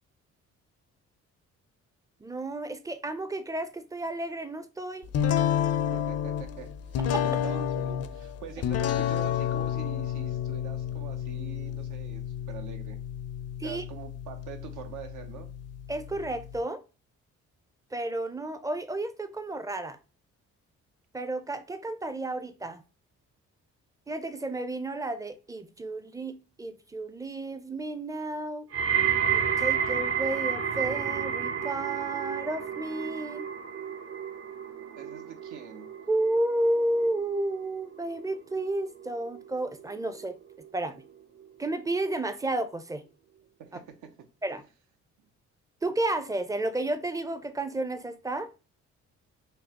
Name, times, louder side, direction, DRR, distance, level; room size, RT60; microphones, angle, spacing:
voice 1, 2.2-5.1 7.1-7.3 13.6-13.8 15.9-16.8 17.9-20.0 21.1-22.8 24.1-28.7 29.3-33.5 36.1-40.4 40.7-41.0 41.6-43.0 44.4-44.6 45.8-48.5, right 2 dB, 10° right, 0.4 m, -32 dB
sound 1, 5.1-16.6, left 9 dB, 55° left, 0.5 m, -31 dB
voice 2, 5.9-13.0 13.6-15.5 34.9-35.9 43.6-44.3, right 8 dB, 80° right, 0.8 m, -44 dB
sound 2, 28.7-39.9 40.2-40.7 41.4-41.5, right 8 dB, 55° right, 0.8 m, -31 dB
5.2 x 2.0 x 2.8 m
cardioid pair, 90°, 30 cm